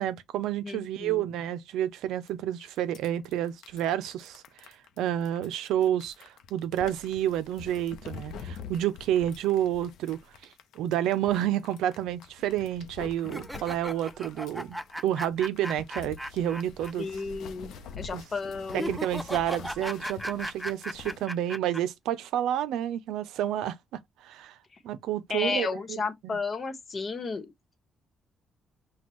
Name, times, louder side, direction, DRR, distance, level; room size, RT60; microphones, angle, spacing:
voice 1, 0.0-10.2 10.7-17.1 18.1-18.2 18.7-23.8 24.2-24.5 24.8-25.7 26.2-26.4, right 11 dB, 90° right, 0.5 m, -29 dB
voice 2, 0.6-1.3 17.0-19.0 24.7-24.8 25.3-27.8, left 4 dB, 40° left, 1.2 m, -33 dB
sound 1, 2.3-2.4 2.6-21.3, left 6 dB, 80° left, 0.6 m, -46 dB
sound 2, 13.2-16.9 17.2-17.3 18.7-21.8, equal, ahead, 0.4 m, -37 dB
6.0 x 2.3 x 3.0 m
cardioid pair, 90°, 0 cm